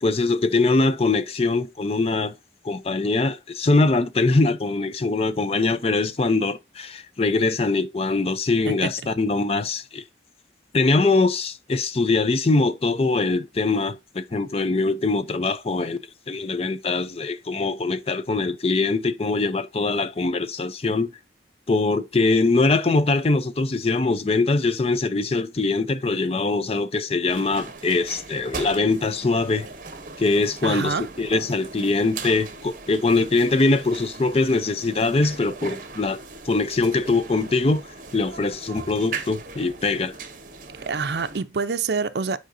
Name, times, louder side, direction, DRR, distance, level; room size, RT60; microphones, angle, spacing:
voice 1, 0.0-2.3 2.6-10.0 10.7-21.2 21.7-29.7 30.2-36.2 36.5-37.9 38.1-40.1, left 3 dB, 30° left, 0.5 m, -22 dB
sound 1, 27.3-41.4, right 4 dB, 45° right, 0.9 m, -39 dB
voice 2, 30.6-31.1 40.9-42.4, right 4 dB, 60° right, 0.5 m, -26 dB
9.1 x 4.9 x 2.6 m
head